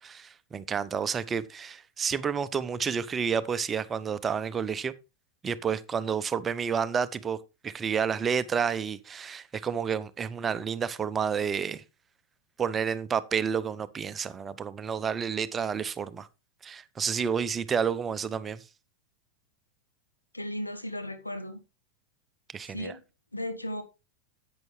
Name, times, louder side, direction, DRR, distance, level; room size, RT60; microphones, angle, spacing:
voice 1, 0.0-4.9 5.4-7.4 7.6-11.8 12.6-16.3 16.6-18.6 22.5-23.0, right 6 dB, 20° right, 0.7 m, -30 dB
voice 2, 20.3-21.6 22.7-23.0 23.3-23.8, left 1 dB, 85° left, 1.3 m, -35 dB
10.5 x 8.7 x 3.3 m
figure-of-eight pair, 90°, 0 cm